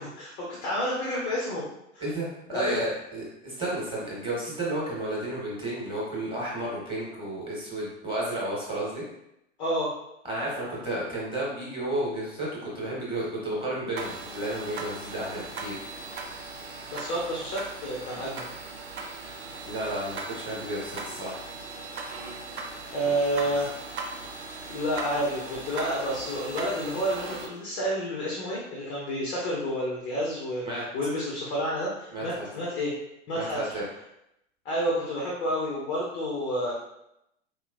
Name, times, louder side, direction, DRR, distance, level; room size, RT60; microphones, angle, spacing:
voice 1, 0.0-1.6 1.9-2.0 2.5-2.8 9.6-9.9 16.9-18.5 22.9-23.7 24.7-32.9 33.3-33.6 34.6-36.7, equal, 10° left, -4 dB, 0.3 m, -29 dB
voice 2, 2.5-9.0 10.2-15.7 19.6-21.4 23.0-23.2 23.4-23.5 30.6-30.8 32.1-32.4 33.3-33.8, right 1 dB, 15° right, -6 dB, 1.3 m, -32 dB
sound 1, 14.0-27.5, right 3 dB, 55° right, 0.7 m, -39 dB
3.5 x 2.9 x 2.4 m, 0.83 s
figure-of-eight pair, 105°, 38 cm